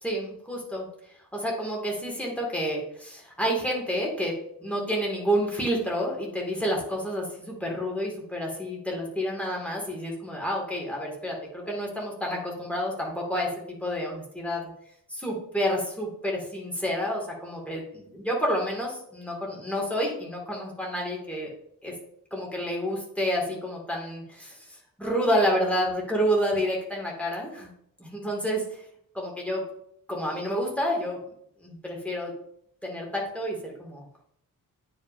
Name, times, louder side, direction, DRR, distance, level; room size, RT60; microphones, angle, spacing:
voice 1, 0.0-0.9 1.3-4.3 4.6-14.7 15.1-21.5 21.8-21.9 22.3-24.5 25.0-27.7 28.0-28.8 29.1-29.6 30.1-31.2 31.6-32.3 32.8-34.0, equal, 5° left, -2 dB, 1.9 m, -29 dB
9.3 x 5.1 x 2.5 m, 0.70 s
wide cardioid pair, 135°, 34 cm